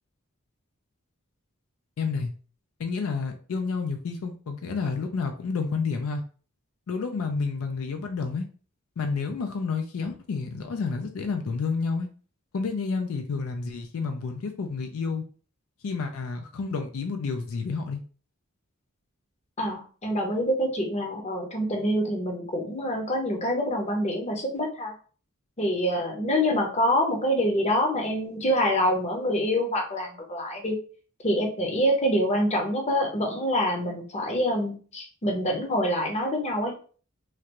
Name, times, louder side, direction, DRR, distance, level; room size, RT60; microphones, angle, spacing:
voice 1, 2.0-2.3 2.8-6.2 6.9-8.4 9.0-12.1 12.5-15.2 15.8-18.0, left 4 dB, 75° left, 5 dB, 0.4 m, -30 dB
voice 2, 19.6-24.9 25.6-30.8 31.2-36.7, equal, 30° left, 2 dB, 0.7 m, -26 dB
3.2 x 2.4 x 2.9 m, 0.40 s
head